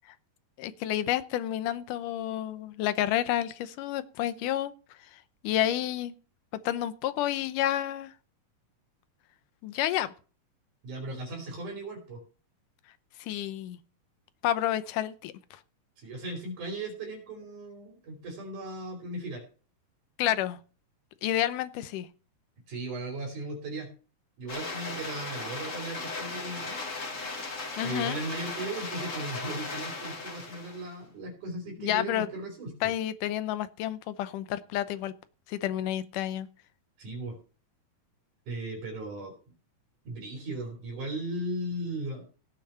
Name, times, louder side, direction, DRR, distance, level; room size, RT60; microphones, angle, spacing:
voice 1, 0.6-4.7 5.4-6.1 6.7-8.1 9.6-10.1 13.2-13.8 14.4-15.3 20.2-20.6 21.2-22.1 27.8-28.2 31.8-32.3 32.8-35.1 35.5-36.5, left 12 dB, 80° left, 2.4 m, -30 dB
voice 2, 10.8-12.2 16.0-19.4 22.7-23.9 24.4-26.8 27.8-32.9 37.0-37.4 38.5-39.3 40.1-42.3, right 2 dB, 65° right, 4.6 m, -37 dB
sound 1, 24.5-30.9, left 3 dB, 30° left, 1.6 m, -37 dB
16.5 x 6.3 x 5.6 m
omnidirectional pair, 3.8 m